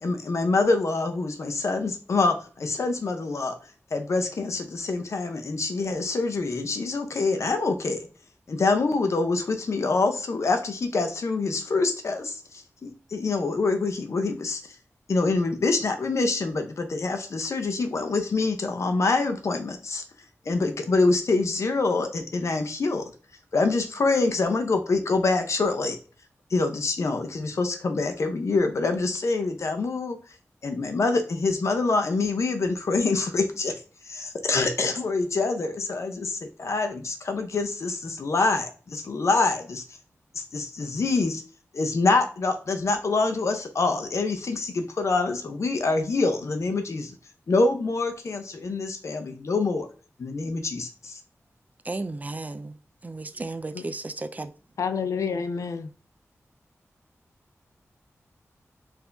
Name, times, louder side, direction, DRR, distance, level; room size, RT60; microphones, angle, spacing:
voice 1, 0.0-3.6 3.9-8.1 8.5-14.8 15.1-20.0 20.4-23.0 23.5-26.0 26.5-30.2 30.6-39.8 40.3-41.4 41.7-47.1 47.5-49.9 50.2-51.2, left 3 dB, 65° left, 0.7 m, -25 dB
voice 2, 51.9-52.7 53.0-54.5, right 2 dB, 30° right, 0.4 m, -34 dB
voice 3, 54.8-55.9, left 6 dB, 85° left, 0.3 m, -28 dB
4.5 x 2.7 x 3.4 m
wide cardioid pair, 85°, 5 cm